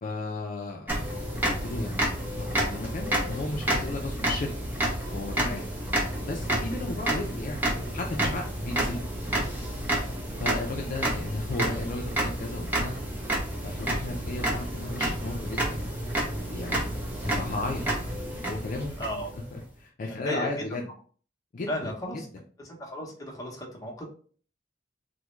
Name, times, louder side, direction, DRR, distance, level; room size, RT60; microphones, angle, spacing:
voice 1, 0.0-0.9 1.6-4.5 5.1-5.6 6.2-7.7 7.9-9.1 10.4-13.0 13.6-15.9 16.5-16.9 17.2-17.9 18.3-18.9 19.5-20.9 21.5-22.3, left 2 dB, 50° left, 0 dB, 0.4 m, -34 dB
sound 1, 0.9-19.6, right 1 dB, 10° right, 0.7 m, -30 dB
voice 2, 20.0-20.5 21.7-22.3 22.8-24.0, equal, 20° left, -1 dB, 0.8 m, -34 dB
3.5 x 2.1 x 3.0 m, 0.43 s
head